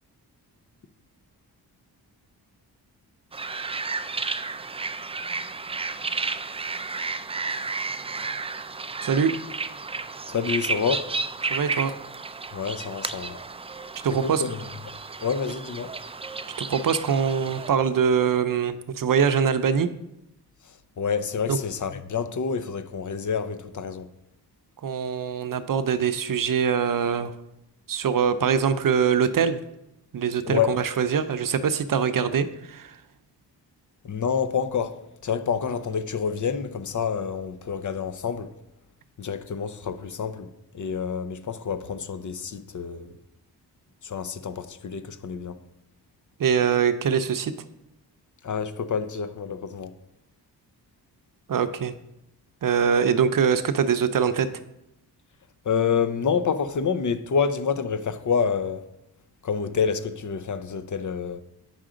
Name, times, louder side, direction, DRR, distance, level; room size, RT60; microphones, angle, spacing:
sound 1, 3.3-17.7, right 4 dB, 15° right, 0.3 m, -32 dB
voice 1, 9.0-9.3 11.5-11.9 14.0-14.4 16.6-19.9 21.5-21.6 24.8-27.3 27.9-29.6 30.1-33.0 46.4-47.5 51.5-51.9 52.6-54.5, right 7 dB, 55° right, 0.7 m, -23 dB
voice 2, 10.3-11.1 12.5-13.4 14.1-14.7 15.2-15.9 20.7-24.1 30.4-30.8 34.0-38.5 39.2-43.2 44.0-45.6 48.4-50.0 55.6-58.9 59.4-61.4, left 6 dB, 45° left, 0.7 m, -28 dB
8.9 x 6.1 x 3.8 m
cardioid pair, 70°, 41 cm